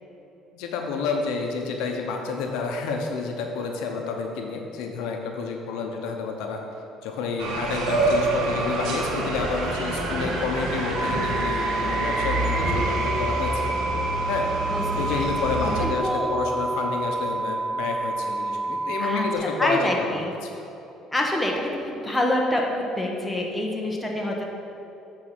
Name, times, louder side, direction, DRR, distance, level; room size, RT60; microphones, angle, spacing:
voice 1, 0.5-6.6 7.0-13.7 14.3-14.5 15.0-20.5, left 4 dB, 80° left, 2 dB, 0.9 m, -29 dB
sound 1, 7.4-15.9, right 2 dB, 75° right, 1.4 m, -27 dB
sound 2, 10.9-19.4, right 2 dB, 30° right, 0.9 m, -29 dB
voice 2, 15.8-16.3 19.0-19.2 19.6-20.3 21.1-24.5, left 1 dB, 5° left, -1 dB, 1.2 m, -26 dB
8.6 x 4.2 x 6.0 m, 2.9 s
supercardioid pair, 95°, 0 cm